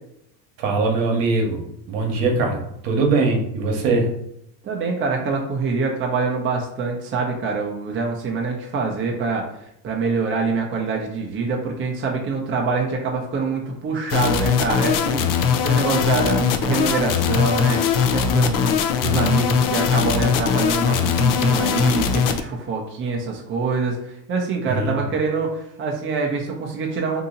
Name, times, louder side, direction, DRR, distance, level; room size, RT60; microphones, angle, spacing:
voice 1, 0.6-1.6 1.9-4.1 24.7-25.0, right 3 dB, 60° right, 2 dB, 1.1 m, -21 dB
voice 2, 4.6-9.4 9.8-15.3 15.6-17.8 18.1-27.2, right 4 dB, 25° right, 0 dB, 0.6 m, -25 dB
sound 1, 14.1-22.4, left 7 dB, 45° left, 0.5 m, -20 dB
2.8 x 2.7 x 3.9 m, 0.76 s
supercardioid pair, 105°, 48 cm